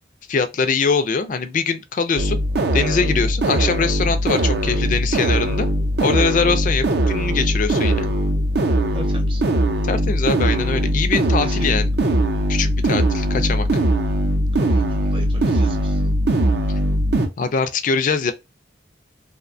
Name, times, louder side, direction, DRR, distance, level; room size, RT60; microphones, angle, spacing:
voice 1, 0.3-2.4 2.7-5.7 6.0-8.1 9.9-11.9 12.5-13.7 17.4-18.3, left 5 dB, 45° left, 0.4 m, -22 dB
sound 1, 2.2-17.3, right 1 dB, 65° right, 0.5 m, -20 dB
voice 2, 8.9-9.4 11.4-11.6 14.6-16.0, right 2 dB, 30° right, 0.7 m, -36 dB
2.6 x 2.1 x 2.5 m
head